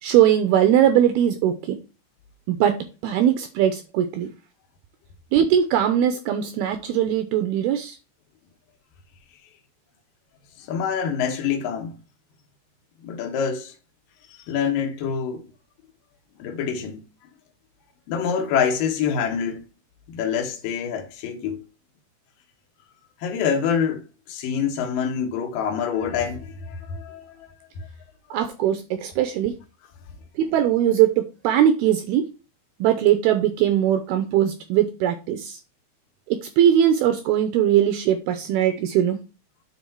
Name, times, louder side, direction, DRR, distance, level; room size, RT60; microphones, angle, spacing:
voice 1, 0.0-1.8 2.5-4.3 5.3-8.0 28.3-29.6 30.4-32.2 32.8-35.6 36.3-39.2, right 10 dB, 85° right, 2.2 m, -20 dB
voice 2, 10.6-11.9 13.0-13.7 14.3-15.4 16.4-17.0 18.1-19.7 20.1-21.6 23.2-27.5 27.8-27.9, left 7 dB, 70° left, 2.2 m, -26 dB
9.5 x 4.0 x 4.5 m
omnidirectional pair, 5.3 m